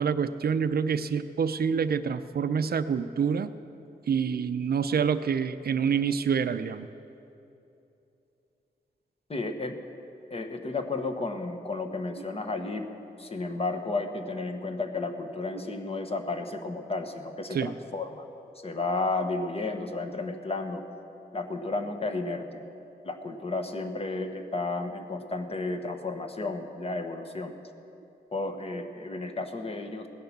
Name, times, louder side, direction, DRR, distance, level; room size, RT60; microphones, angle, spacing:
voice 1, 0.0-3.5 4.1-6.9 17.5-17.7, right 6 dB, 65° right, 12 dB, 0.5 m, -27 dB
voice 2, 9.3-9.8 10.3-12.9 13.2-18.2 18.6-20.8 21.3-22.6 23.0-27.5 28.3-30.1, left 3 dB, 35° left, 6 dB, 1.2 m, -32 dB
17.0 x 10.5 x 7.2 m, 2.8 s
wide cardioid pair, 110°, 17 cm